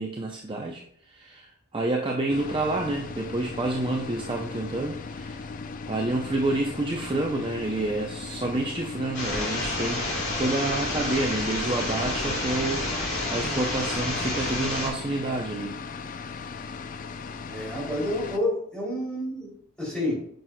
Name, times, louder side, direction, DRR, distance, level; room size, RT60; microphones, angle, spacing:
voice 1, 0.0-5.5 5.9-12.9 13.3-15.8, right 2 dB, 20° right, 1 dB, 0.5 m, -29 dB
sound 1, 2.3-18.4, left 4 dB, 35° left, 0.4 m, -38 dB
sound 2, 9.1-14.9, left 2 dB, 55° left, 2.7 m, -29 dB
voice 2, 17.5-20.1, left 1 dB, 5° left, -6 dB, 2.9 m, -29 dB
9.2 x 6.2 x 2.2 m, 0.68 s
head